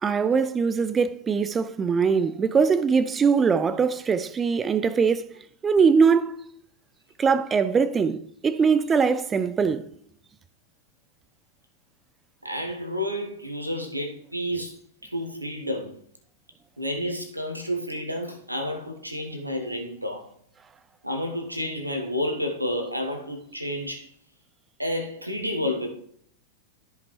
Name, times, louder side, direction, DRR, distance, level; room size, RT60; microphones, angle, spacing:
voice 1, 0.0-6.5 7.2-9.9, right 5 dB, 20° right, 0.5 m, -22 dB
voice 2, 12.4-14.7 15.0-15.9 16.8-20.3 21.0-24.1 24.8-25.9, left 1 dB, 85° right, 1.4 m, -30 dB
13.5 x 5.1 x 3.2 m
figure-of-eight pair, 90°, 0 cm